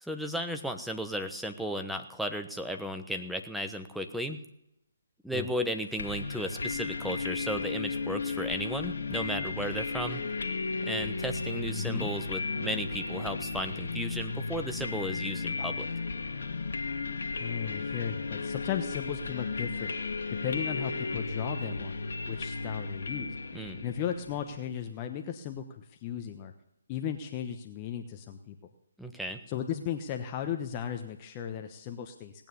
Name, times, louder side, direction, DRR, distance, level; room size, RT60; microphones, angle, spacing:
voice 1, 0.0-4.4 5.2-10.2 10.8-15.9 23.5-23.8 29.0-29.4, equal, ahead, 5 dB, 1.0 m, -35 dB
sound 1, 6.0-24.7, left 4 dB, 65° left, 1.8 m, -34 dB
voice 2, 11.7-12.1 17.4-19.9 20.4-21.9 22.3-23.3 23.8-26.5 26.9-28.5 29.5-32.3, left 9 dB, 25° left, 5 dB, 1.0 m, -35 dB
18.5 x 9.1 x 7.0 m, 0.82 s
figure-of-eight pair, 145°, 0 cm